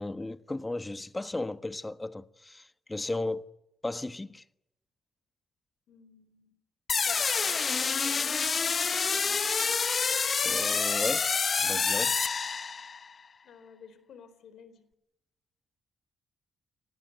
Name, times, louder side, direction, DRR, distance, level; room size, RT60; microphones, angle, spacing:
voice 1, 0.0-3.4 3.8-4.4 10.4-11.3 11.6-12.1, left 2 dB, 20° left, 1.4 m, -35 dB
voice 2, 5.9-6.6 7.1-8.4 9.0-9.7 13.4-14.9, left 6 dB, 70° left, 4.2 m, -53 dB
sound 1, 6.9-13.1, left 5 dB, 45° left, 1.1 m, -27 dB
28.0 x 19.0 x 9.2 m
hypercardioid pair, 50°, 0 cm